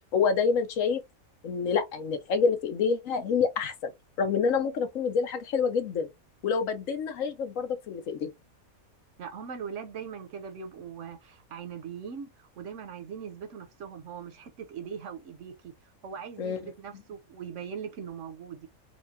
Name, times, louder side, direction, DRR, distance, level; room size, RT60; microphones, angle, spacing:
voice 1, 0.1-1.0 1.4-3.9 4.2-6.1 6.4-8.3 16.4-16.7, left 5 dB, 70° left, 1.1 m, -27 dB
voice 2, 9.2-15.7 16.0-18.7, right 7 dB, 65° right, 0.9 m, -40 dB
4.4 x 2.3 x 2.6 m
omnidirectional pair, 1.5 m